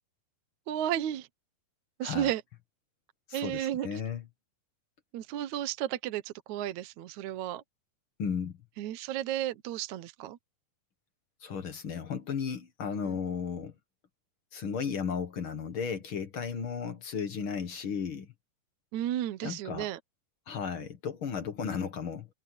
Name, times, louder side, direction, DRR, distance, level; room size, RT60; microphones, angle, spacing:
voice 1, 0.7-1.3 2.0-2.4 3.3-3.9 5.1-7.6 8.8-10.4 13.0-13.2 18.9-20.0, right 12 dB, 65° right, 2.0 m, -33 dB
voice 2, 2.0-2.3 3.3-4.3 8.2-8.6 11.4-13.7 14.5-18.3 19.4-19.9 20.5-22.3, left 6 dB, 50° left, 1.7 m, -34 dB
omnidirectional pair, 4.1 m